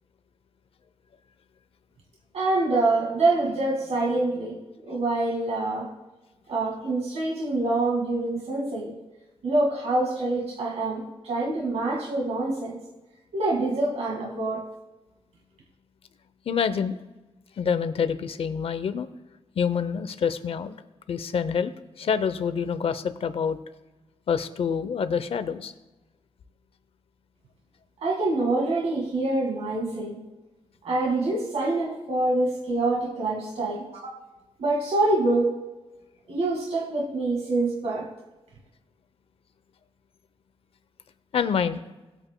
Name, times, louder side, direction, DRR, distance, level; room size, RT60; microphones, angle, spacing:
voice 1, 2.3-5.9 6.5-8.9 9.4-12.8 13.3-14.6 28.0-30.2 30.8-33.9 34.6-35.5 36.3-38.1, right 2 dB, 70° right, -2 dB, 2.0 m, -25 dB
voice 2, 16.5-17.0 17.6-19.1 19.6-20.7 21.1-23.6 24.3-25.7 41.3-41.8, left 6 dB, 60° left, 12 dB, 0.7 m, -27 dB
18.5 x 8.9 x 2.3 m, 1.1 s
wide cardioid pair, 160°, 11 cm